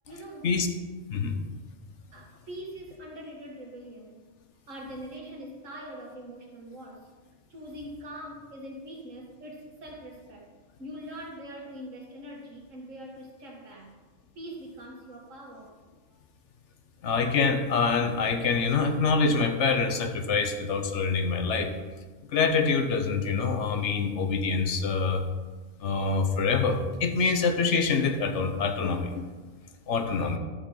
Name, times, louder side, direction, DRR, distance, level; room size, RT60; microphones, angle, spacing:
voice 1, 0.1-0.5 2.1-4.3 4.7-7.1 7.5-10.5 10.8-14.0 14.4-15.8 29.5-29.8, equal, 90° right, -1 dB, 2.1 m, -43 dB
voice 2, 17.0-21.7 22.3-25.2 25.8-29.3 29.9-30.4, left 4 dB, 70° left, 5 dB, 1.2 m, -25 dB
12.5 x 6.4 x 3.9 m, 1.3 s
omnidirectional pair, 1.3 m